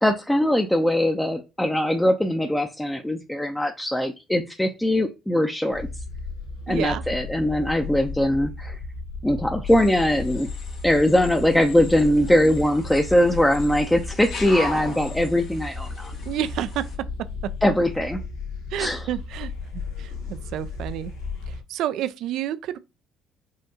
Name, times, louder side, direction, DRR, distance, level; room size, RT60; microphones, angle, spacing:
voice 1, 0.0-5.9 6.7-8.8 9.2-10.5 10.8-16.1 17.6-18.2 18.8-19.1, left 1 dB, 5° left, 0.6 m, -21 dB
sound 1, 5.7-21.6, left 4 dB, 85° left, 1.1 m, -34 dB
voice 2, 6.7-7.0 16.3-16.8 18.7-21.1 21.5-22.8, right 11 dB, 70° right, 0.3 m, -30 dB
sound 2, 9.7-16.9, left 2 dB, 65° left, 1.2 m, -40 dB
5.6 x 2.6 x 2.7 m
hypercardioid pair, 65°, 0 cm